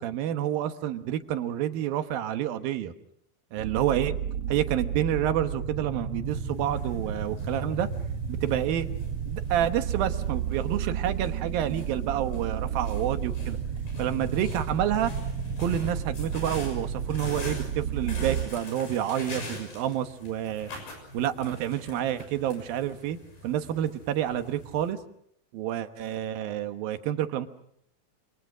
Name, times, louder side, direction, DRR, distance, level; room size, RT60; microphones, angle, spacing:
voice 1, 0.0-2.9 3.5-4.1 4.5-7.9 8.3-8.9 9.3-13.6 14.0-15.1 15.6-20.7 21.1-23.2 23.4-25.0 25.5-27.5, right 11 dB, 80° right, 9 dB, 3.1 m, -29 dB
sound 1, 3.6-18.5, right 7 dB, 65° right, 1.5 m, -32 dB
sound 2, 6.5-24.9, left 1 dB, 85° left, 8.3 m, -44 dB
27.5 x 27.5 x 6.2 m, 0.72 s
omnidirectional pair, 4.2 m